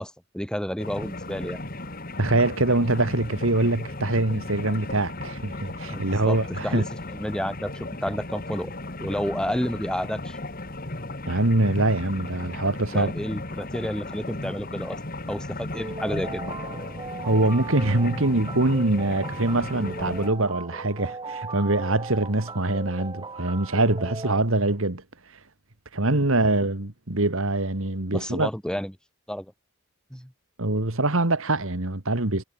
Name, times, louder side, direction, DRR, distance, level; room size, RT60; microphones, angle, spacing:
voice 1, 0.0-1.6 5.9-6.4 6.6-8.7 9.0-10.4 12.6-15.0 15.3-16.4 28.1-28.9 29.3-29.5 30.1-30.3, equal, 5° left, 2.1 m, -30 dB
sound 1, 0.8-20.3, left 2 dB, 40° left, 2.4 m, -36 dB
voice 2, 2.2-6.9 11.3-13.1 17.2-25.0 25.9-28.5 30.6-32.4, right 2 dB, 65° right, 2.0 m, -24 dB
sound 2, 15.7-24.4, right 3 dB, 20° right, 0.9 m, -38 dB
head